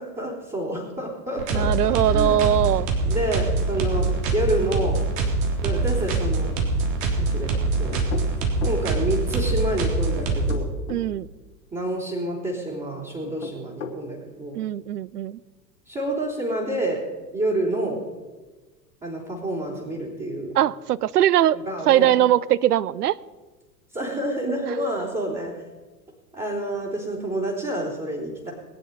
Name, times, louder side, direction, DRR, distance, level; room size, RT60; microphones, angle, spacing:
voice 1, 0.0-2.4 3.1-5.0 5.6-6.5 7.3-7.5 7.8-8.0 8.6-10.7 11.7-14.6 15.9-17.0 17.3-18.0 19.0-20.5 21.7-22.1 23.9-25.5 26.3-28.5, right 1 dB, 15° right, -6 dB, 3.7 m, -28 dB
sound 1, 1.4-10.5, right 3 dB, 50° right, 3.5 m, -24 dB
voice 2, 1.5-2.9 10.9-11.3 14.5-15.4 20.5-21.6 21.9-23.2, right 12 dB, 65° right, 19 dB, 0.7 m, -21 dB
sound 2, 7.9-8.9 10.3-11.1 13.2-14.0, left 6 dB, 55° left, 2.8 m, -35 dB
20.5 x 10.5 x 5.5 m, 1.3 s
figure-of-eight pair, 90°, 50 cm